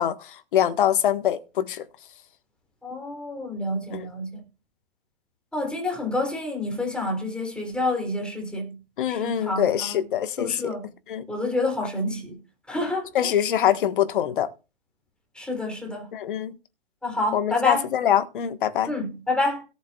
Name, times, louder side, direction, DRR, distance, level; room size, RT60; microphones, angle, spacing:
voice 1, 0.0-1.8 3.9-4.1 9.0-10.7 11.1-11.2 13.1-14.5 16.1-16.5 17.3-18.9, left 10 dB, 55° left, 1.6 m, -24 dB
voice 2, 2.8-4.4 5.5-8.8 9.1-10.0 10.4-10.8 11.3-12.4 12.7-13.1 15.3-16.1 17.0-17.9 18.9-19.6, left 2 dB, 5° left, 3.5 m, -28 dB
18.0 x 7.2 x 2.4 m
figure-of-eight pair, 120°, 30 cm